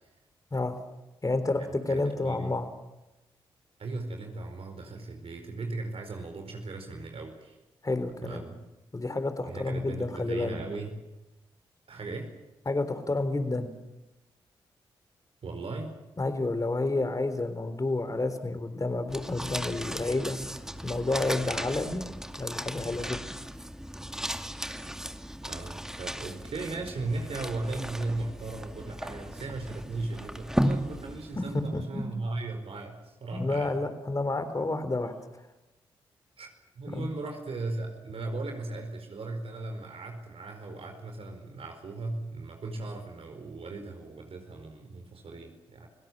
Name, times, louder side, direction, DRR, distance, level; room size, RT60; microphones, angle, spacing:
voice 1, 1.2-2.7 7.8-8.4 8.9-10.6 12.7-13.7 16.2-20.4 20.8-22.0 22.4-23.3 31.4-31.5 31.7-32.0 33.3-35.1 36.9-37.1, left 2 dB, 35° left, 10 dB, 3.8 m, -30 dB
voice 2, 1.9-2.6 3.8-7.6 8.2-8.6 9.4-10.9 11.9-12.3 15.4-15.9 25.4-33.8 36.4-45.9, right 3 dB, 65° right, 4 dB, 4.7 m, -37 dB
sound 1, 19.1-31.7, equal, 5° right, 2.3 m, -36 dB
30.0 x 17.5 x 7.6 m, 0.99 s
supercardioid pair, 40°, 11 cm